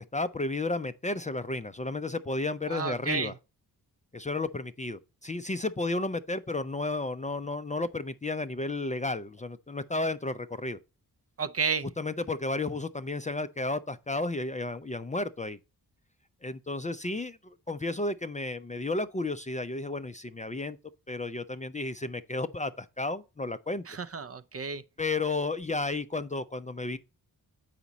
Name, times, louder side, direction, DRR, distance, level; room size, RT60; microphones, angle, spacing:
voice 1, 0.0-3.3 4.1-10.8 12.0-15.6 16.4-20.8 21.1-23.8 25.0-27.0, left 2 dB, 20° left, 0.4 m, -32 dB
voice 2, 2.7-3.3 11.4-11.9 23.9-24.8, right 5 dB, 40° right, 0.5 m, -31 dB
7.1 x 5.0 x 4.0 m
cardioid pair, 55°, 39 cm